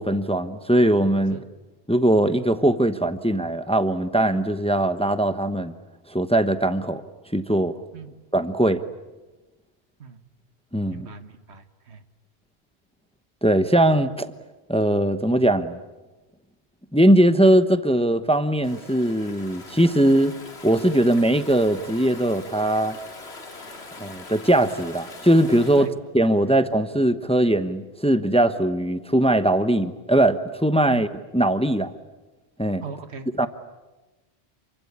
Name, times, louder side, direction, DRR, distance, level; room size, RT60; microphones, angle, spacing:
voice 1, 0.0-1.4 1.9-5.7 6.1-7.0 7.3-7.8 8.3-8.8 10.7-11.1 13.4-14.3 14.7-15.8 16.9-20.3 20.6-23.0 24.0-25.9 26.1-31.1 31.3-31.9 32.6-32.8 33.4-33.5, right 1 dB, 5° left, 11 dB, 0.9 m, -20 dB
voice 2, 10.9-12.0 25.8-25.9 30.9-31.0 32.8-33.5, right 6 dB, 85° right, 10 dB, 1.7 m, -38 dB
Stream / Ocean, 18.6-25.9, left 3 dB, 80° left, 2.5 m, -42 dB
28.5 x 24.0 x 8.6 m, 1.1 s
omnidirectional pair, 1.1 m